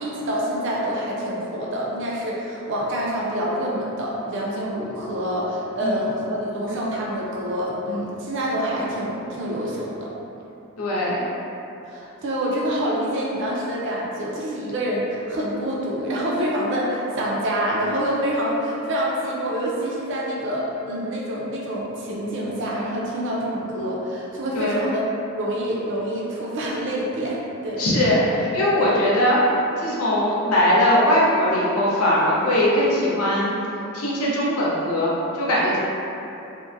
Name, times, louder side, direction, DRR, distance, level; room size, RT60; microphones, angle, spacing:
voice 1, 0.0-10.1 11.9-25.0 25.4-27.8, equal, 55° right, -5 dB, 0.5 m, -26 dB
voice 2, 10.8-11.3 24.6-24.8 27.8-29.4 29.8-33.6 33.9-35.8, left 1 dB, 70° left, -6 dB, 0.6 m, -20 dB
2.6 x 2.1 x 2.5 m, 2.9 s
head